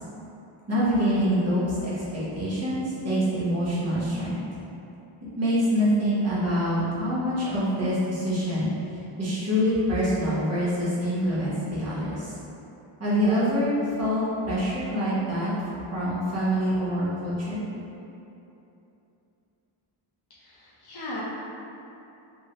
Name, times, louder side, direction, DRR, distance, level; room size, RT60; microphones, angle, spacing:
voice 1, 0.7-4.4 5.4-8.7 9.2-12.3 13.0-15.5 15.9-17.6, equal, 30° right, -9 dB, 0.9 m, -25 dB
voice 2, 20.3-21.2, left 1 dB, 50° left, -6 dB, 0.7 m, -38 dB
3.6 x 2.2 x 2.8 m, 2.9 s
wide cardioid pair, 100°, 50 cm